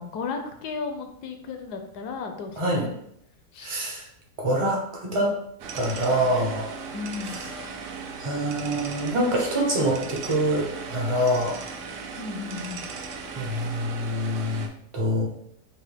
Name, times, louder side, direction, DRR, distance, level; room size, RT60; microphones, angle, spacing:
voice 1, 0.0-3.0 3.5-3.7 6.9-7.4 12.2-12.8, left 5 dB, 75° left, 5 dB, 1.1 m, -34 dB
voice 2, 2.6-2.9 3.6-4.0 4.4-5.3 5.7-6.7 7.3-7.5 8.2-11.6 13.4-14.7 14.9-15.3, equal, 35° right, -1 dB, 0.5 m, -25 dB
sound 1, 5.6-14.7, right 5 dB, 75° right, 0.7 m, -37 dB
5.3 x 2.1 x 3.3 m, 0.71 s
omnidirectional pair, 1.8 m